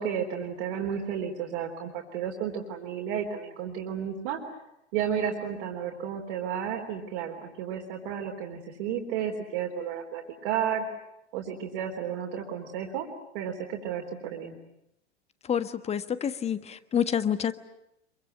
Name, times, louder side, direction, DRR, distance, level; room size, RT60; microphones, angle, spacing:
voice 1, 0.0-4.4 4.9-10.9 11.3-13.1 13.3-14.6, right 8 dB, 50° right, 3.7 m, -32 dB
voice 2, 15.5-17.5, left 8 dB, 20° left, 1.4 m, -28 dB
26.5 x 23.5 x 9.2 m
figure-of-eight pair, 90°, 34 cm